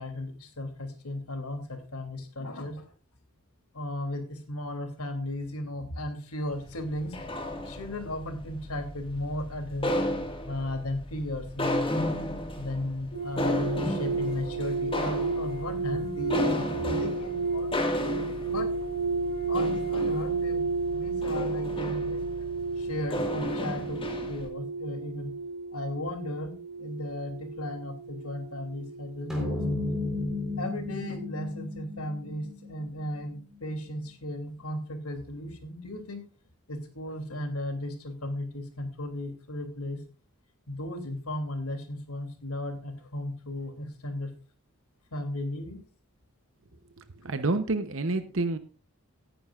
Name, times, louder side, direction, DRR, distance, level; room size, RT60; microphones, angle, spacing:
voice 1, 0.0-2.8 3.7-7.2 7.6-9.9 10.5-11.9 12.6-16.5 16.8-18.0 18.5-18.7 19.5-22.2 22.8-24.0 24.3-25.3 25.7-26.5 26.8-29.6 30.6-36.2 36.7-40.0 40.7-44.3 45.1-45.8, left 1 dB, 85° left, 6 dB, 2.9 m, -35 dB
sound 1, 6.5-24.5, left 1 dB, 25° left, 1.8 m, -33 dB
sound 2, 13.1-30.4 30.7-31.1, right 4 dB, 45° left, 4.5 m, -32 dB
sound 3, 29.3-33.9, left 2 dB, ahead, 4.0 m, -33 dB
voice 2, 47.2-48.6, right 3 dB, 60° right, 9 dB, 0.9 m, -28 dB
18.0 x 10.0 x 2.5 m, 0.34 s
head